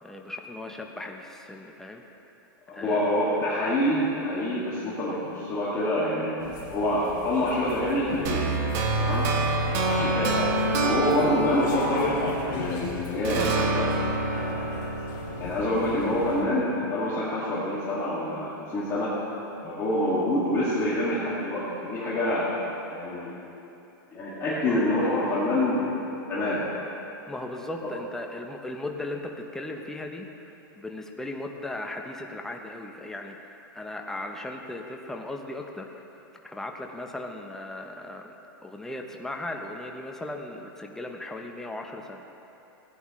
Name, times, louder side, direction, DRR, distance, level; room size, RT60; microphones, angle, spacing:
voice 1, 0.0-2.0 2.7-3.2 24.7-24.9 27.3-36.0 36.4-38.3 38.6-42.2, left 2 dB, 5° left, 2 dB, 0.7 m, -37 dB
voice 2, 2.7-6.4 6.7-8.5 9.0-9.3 9.7-10.4 10.8-13.9 14.3-14.7 15.4-19.2 19.6-22.5 22.9-23.3 24.1-25.9 26.3-26.7 27.8-27.9, left 1 dB, 25° left, -9 dB, 2.1 m, -26 dB
sound 1, 6.4-16.4, left 3 dB, 40° left, 2.8 m, -37 dB
sound 2, 8.2-12.8 13.2-16.3, right 2 dB, 50° right, 1.5 m, -27 dB
17.0 x 9.4 x 3.2 m, 2.9 s
hypercardioid pair, 140°, 12 cm